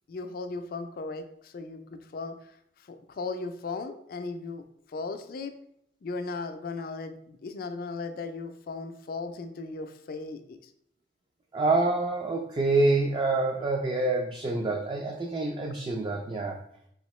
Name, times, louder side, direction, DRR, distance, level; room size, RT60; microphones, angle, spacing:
voice 1, 0.1-5.5 6.0-10.7, left 3 dB, 50° left, 8 dB, 0.4 m, -37 dB
voice 2, 11.5-16.6, right 2 dB, 25° right, 2 dB, 0.3 m, -26 dB
3.7 x 3.5 x 3.0 m, 0.72 s
head